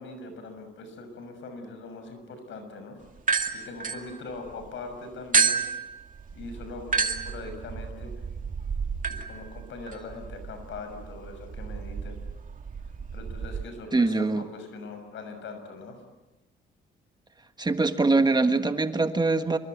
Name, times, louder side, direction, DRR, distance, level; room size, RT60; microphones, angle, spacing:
voice 1, 0.0-2.9 3.5-5.7 6.3-8.1 9.1-12.2 13.1-15.9, left 3 dB, 75° left, 8 dB, 6.7 m, -41 dB
sound 1, 3.2-4.7 5.3-13.6, right 5 dB, 40° right, 2.3 m, -30 dB
voice 2, 13.9-14.4 17.6-19.6, right 3 dB, 20° right, 8 dB, 1.5 m, -23 dB
26.5 x 23.0 x 8.2 m, 1.1 s
cardioid pair, 90°, 20 cm